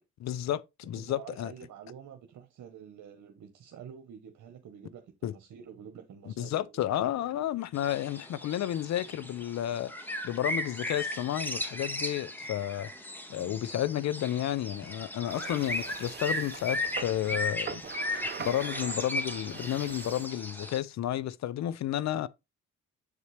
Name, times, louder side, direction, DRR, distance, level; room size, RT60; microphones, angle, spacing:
voice 1, 0.2-1.5 5.2-5.3 6.3-12.9 13.3-17.8 18.1-22.3, left 12 dB, 65° left, 0.6 m, -32 dB
voice 2, 0.9-6.9 13.4-13.6, right 8 dB, 70° right, 1.1 m, -48 dB
sound 1, 7.8-20.8, left 1 dB, 5° left, 1.4 m, -36 dB
sound 2, 15.3-20.3, right 7 dB, 35° right, 0.7 m, -43 dB
8.2 x 4.2 x 3.2 m
cardioid pair, 90°, 30 cm